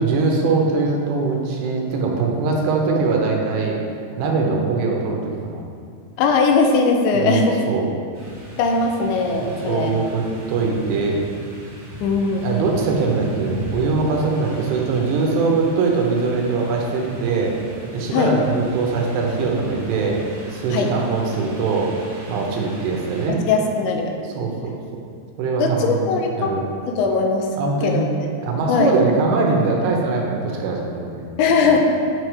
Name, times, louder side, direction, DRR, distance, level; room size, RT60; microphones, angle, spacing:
voice 1, 0.0-3.8 4.2-5.6 7.1-7.9 9.4-11.2 12.4-17.5 17.9-20.2 20.5-21.9 22.3-23.4 24.4-24.7 25.4-26.1 26.4-26.6 27.5-28.1 28.4-31.3 31.6-31.8, right 4 dB, 80° right, 0 dB, 3.0 m, -22 dB
voice 2, 6.2-7.6 8.6-9.9 12.0-12.5 18.1-18.4 20.7-20.9 23.5-24.1 25.6-26.5 26.9-27.5 27.8-28.1 28.7-29.0 31.4-31.8, left 4 dB, 90° left, 3 dB, 3.1 m, -19 dB
sound 1, 8.1-23.3, right 1 dB, 60° right, 1.2 m, -36 dB
8.8 x 4.7 x 4.7 m, 2.3 s
omnidirectional pair, 5.1 m